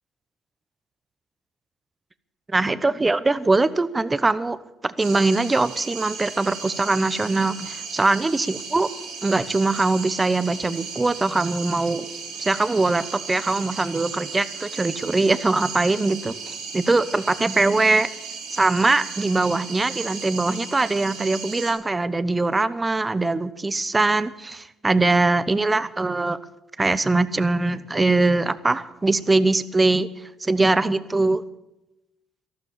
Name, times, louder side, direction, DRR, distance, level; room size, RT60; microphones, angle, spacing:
voice 1, 2.5-4.6 4.8-8.9 9.2-12.1 12.4-18.1 18.5-26.4 26.8-30.1 30.4-31.4, right 3 dB, 25° right, 15 dB, 1.0 m, -22 dB
sound 1, 5.0-21.7, right 5 dB, 80° right, 6.4 m, -36 dB
13.5 x 12.5 x 7.2 m, 0.93 s
supercardioid pair, 65°, 0 cm